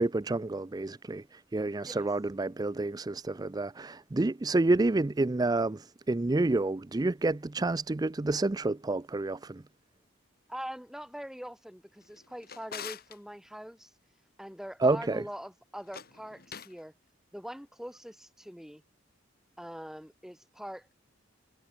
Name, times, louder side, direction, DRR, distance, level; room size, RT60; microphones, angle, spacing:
voice 1, 0.0-9.6 14.8-15.3, right 2 dB, 20° right, 0.4 m, -29 dB
voice 2, 10.5-13.9 14.4-16.9 17.3-18.8 19.6-20.9, equal, ahead, 4.7 m, -43 dB
Drawer open or close, 12.0-13.2 15.8-16.8, left 7 dB, 50° left, 5.3 m, -45 dB
head